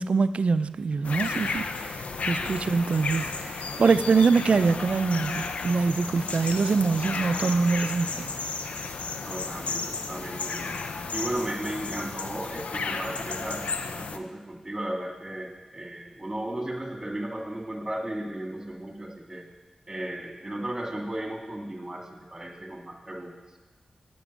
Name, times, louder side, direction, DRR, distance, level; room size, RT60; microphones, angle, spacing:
voice 1, 0.0-8.3, right 4 dB, 65° right, 13 dB, 0.4 m, -24 dB
sound 1, 1.0-14.2, left 4 dB, 80° left, 0.6 m, -33 dB
voice 2, 9.2-10.8 11.1-19.4 19.9-22.0 22.3-23.3, right 1 dB, 20° right, 1 dB, 2.1 m, -35 dB
7.7 x 7.1 x 7.2 m, 1.2 s
cardioid pair, 50°, 2 cm